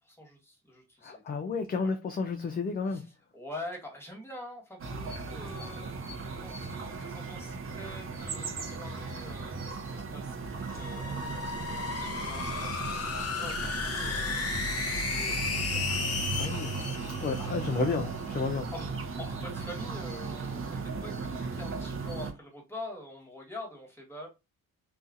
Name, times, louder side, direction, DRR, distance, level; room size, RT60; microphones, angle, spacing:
voice 1, 0.0-1.5 1.8-1.9 2.9-3.0 3.3-15.8 16.3-16.8 17.4-18.4 18.7-24.3, left 1 dB, 5° left, 1.3 m, -46 dB
voice 2, 1.0-3.0 16.4-16.7 17.2-18.7, left 4 dB, 25° left, 0.4 m, -31 dB
sound 1, 4.8-22.3, right 4 dB, 35° right, 0.7 m, -37 dB
sound 2, 10.5-18.0, left 4 dB, 45° left, 0.8 m, -34 dB
2.6 x 2.4 x 2.5 m
cardioid pair, 85°, 35 cm